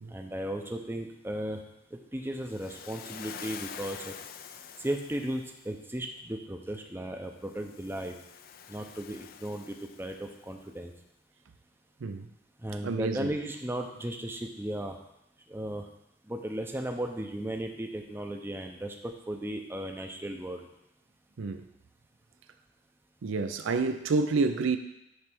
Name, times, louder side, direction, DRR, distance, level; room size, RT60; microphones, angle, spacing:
voice 1, 0.1-1.6 1.9-4.1 4.8-8.1 8.7-10.9 12.6-15.0 15.5-15.9 16.3-20.7, right 1 dB, 10° right, 3 dB, 0.6 m, -36 dB
Waves surf, 2.4-5.6 7.4-10.5, left 7 dB, 45° left, 0.4 m, -46 dB
voice 2, 12.8-13.3 21.4-21.6 23.2-24.8, right 4 dB, 70° right, 9 dB, 0.5 m, -28 dB
9.6 x 3.3 x 6.0 m, 0.85 s
head